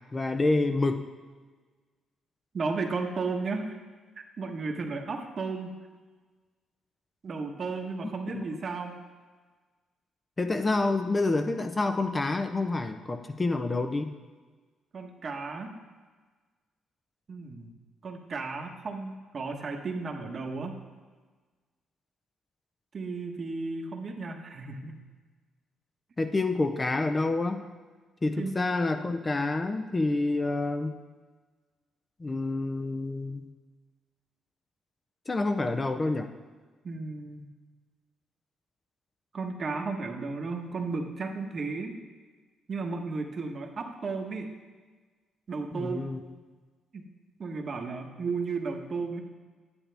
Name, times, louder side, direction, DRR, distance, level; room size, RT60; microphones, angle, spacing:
voice 1, 0.1-1.1 8.3-8.5 10.4-14.1 26.2-27.7 28.2-31.0 32.2-33.5 35.3-36.3 45.7-46.2, left 2 dB, 25° left, 7 dB, 0.6 m, -28 dB
voice 2, 2.5-3.8 4.4-5.7 7.2-9.0 14.9-15.7 17.3-17.7 18.0-20.7 22.9-25.0 28.4-28.6 36.8-37.4 39.3-42.0 42.7-44.6 45.5-46.1 46.9-47.1 47.4-49.2, right 4 dB, 45° right, 3 dB, 1.2 m, -34 dB
9.8 x 8.7 x 3.4 m, 1.4 s
cardioid pair, 90°, 0 cm